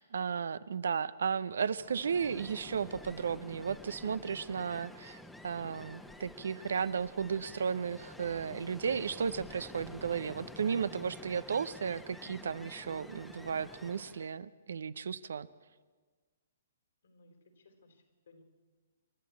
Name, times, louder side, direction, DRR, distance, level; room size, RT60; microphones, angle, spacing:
voice 1, 0.0-15.5, right 6 dB, 70° right, 17 dB, 0.7 m, -34 dB
Ocean, 1.6-14.3, left 1 dB, 5° left, 1.2 m, -50 dB
voice 2, 17.0-18.4, left 2 dB, 70° left, 5 dB, 4.1 m, -62 dB
27.5 x 12.0 x 8.6 m, 1.5 s
figure-of-eight pair, 125°, 0 cm